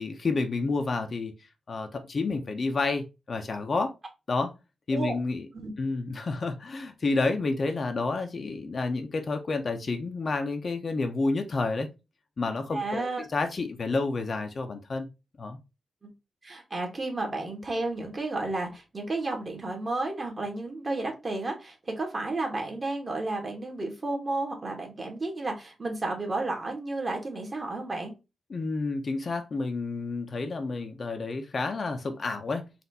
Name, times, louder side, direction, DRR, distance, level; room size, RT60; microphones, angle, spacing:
voice 1, 0.0-1.3 1.7-3.9 4.3-4.5 4.9-5.5 5.8-11.9 12.4-15.1 15.4-15.6 28.5-32.6, left 3 dB, 45° left, 6 dB, 0.6 m, -30 dB
voice 2, 12.7-13.2 16.0-16.1 16.4-28.1, right 2 dB, 30° right, 2 dB, 1.3 m, -32 dB
4.2 x 2.5 x 3.9 m, 0.26 s
wide cardioid pair, 125°, 0 cm